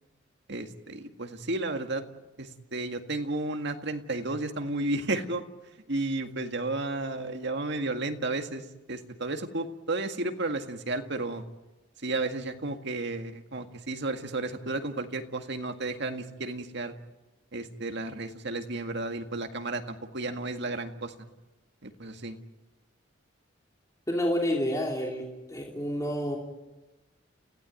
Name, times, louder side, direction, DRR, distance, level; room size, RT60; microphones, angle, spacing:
voice 1, 0.5-2.0 2.4-5.4 5.9-11.4 12.0-16.9 17.5-21.3 21.8-22.4, right 2 dB, 60° right, 6 dB, 1.9 m, -33 dB
voice 2, 24.1-25.2 25.5-26.4, equal, 15° left, -1 dB, 3.1 m, -29 dB
30.0 x 16.0 x 9.1 m, 1.0 s
head